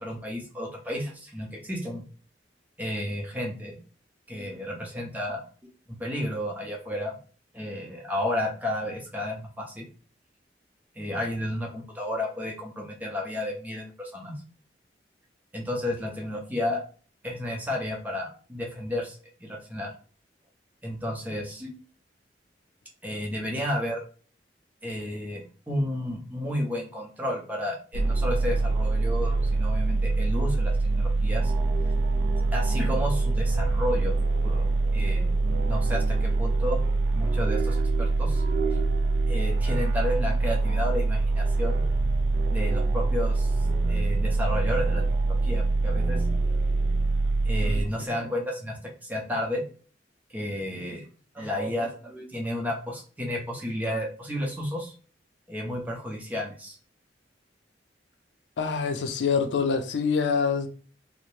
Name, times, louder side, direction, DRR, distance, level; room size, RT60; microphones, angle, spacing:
voice 1, 0.0-2.0 2.8-3.8 4.3-5.4 5.9-7.2 7.5-9.9 11.0-14.3 15.5-16.8 17.2-19.9 20.8-21.7 23.0-24.0 24.8-31.5 32.5-34.1 34.4-34.7 34.9-35.3 35.7-36.8 37.1-38.4 39.3-41.8 42.5-43.5 43.9-46.2 47.4-49.6 50.3-51.0 51.3-54.9 55.5-56.8, left 1 dB, 10° right, 0.6 m, -32 dB
sound 1, 27.9-47.8, right 3 dB, 70° right, 0.4 m, -24 dB
voice 2, 58.6-60.7, left 5 dB, 85° left, 0.4 m, -25 dB
2.7 x 2.0 x 3.1 m
head